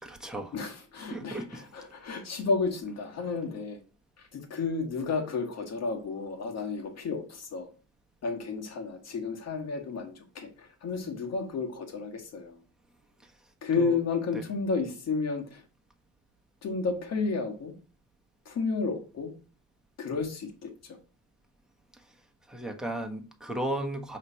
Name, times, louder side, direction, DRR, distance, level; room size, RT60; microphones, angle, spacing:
voice 1, 0.0-0.5 1.1-1.6 13.2-13.3 13.8-14.0 14.3-14.4 22.5-24.2, right 1 dB, ahead, 2 dB, 1.2 m, -35 dB
voice 2, 0.5-3.8 4.2-7.7 8.2-12.6 13.6-15.6 16.6-17.7 18.4-19.3 20.0-21.0, left 4 dB, 60° left, 4 dB, 1.7 m, -32 dB
5.7 x 3.3 x 5.6 m, 0.37 s
cardioid pair, 90°, 30 cm